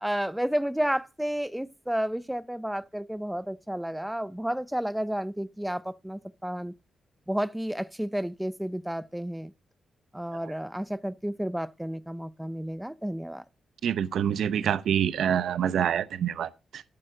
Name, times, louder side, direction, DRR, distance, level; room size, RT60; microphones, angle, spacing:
voice 1, 0.0-6.7 7.3-9.5 10.1-13.4, equal, 5° right, 0.5 m, -31 dB
voice 2, 13.8-16.8, right 9 dB, 80° right, 0.7 m, -26 dB
11.5 x 8.7 x 3.7 m
cardioid pair, 110°, 0 cm